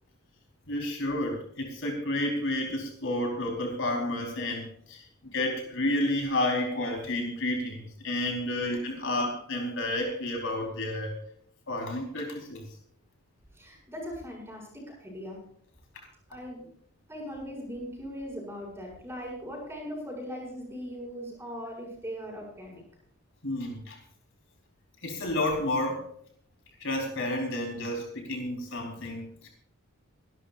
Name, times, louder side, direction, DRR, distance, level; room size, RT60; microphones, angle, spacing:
voice 1, 0.7-11.2 11.7-12.6 23.4-24.0 25.0-26.1 26.8-29.5, left 1 dB, 60° left, 1 dB, 4.2 m, -31 dB
voice 2, 13.5-15.4 16.3-16.6 17.1-22.8, equal, 10° right, -1 dB, 6.9 m, -39 dB
25.5 x 12.0 x 2.6 m, 0.63 s
head